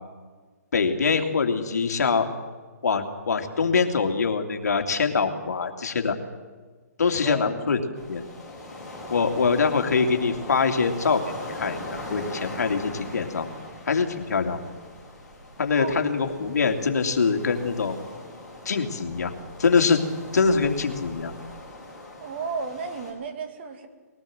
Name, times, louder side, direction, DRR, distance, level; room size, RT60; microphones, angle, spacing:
voice 1, 0.7-2.3 2.8-6.1 7.0-7.8 8.1-8.2 9.1-11.2 11.5-13.5 13.9-14.6 15.6-18.0 18.6-19.3 19.6-20.0 20.3-21.3, left 5 dB, 70° left, 4 dB, 2.8 m, -23 dB
voice 2, 7.2-7.8 15.8-16.0 22.2-23.9, right 5 dB, 40° right, 7 dB, 2.4 m, -34 dB
sound 1, 8.0-23.1, left 1 dB, ahead, 5.8 m, -40 dB
21.0 x 18.0 x 7.9 m, 1.4 s
hypercardioid pair, 155°, 9 cm